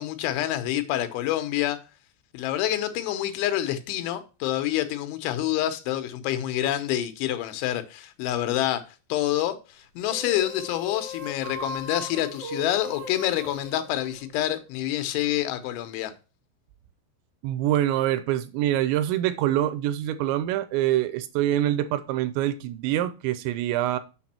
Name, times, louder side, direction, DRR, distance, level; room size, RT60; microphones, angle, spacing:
voice 1, 0.0-1.8 2.3-8.8 9.1-16.1, left 13 dB, 90° left, 3.3 m, -27 dB
sound 1, 10.0-14.7, left 1 dB, 65° right, 2.2 m, -38 dB
voice 2, 17.4-24.0, right 13 dB, 85° right, 2.9 m, -25 dB
7.0 x 6.1 x 4.2 m
omnidirectional pair, 5.3 m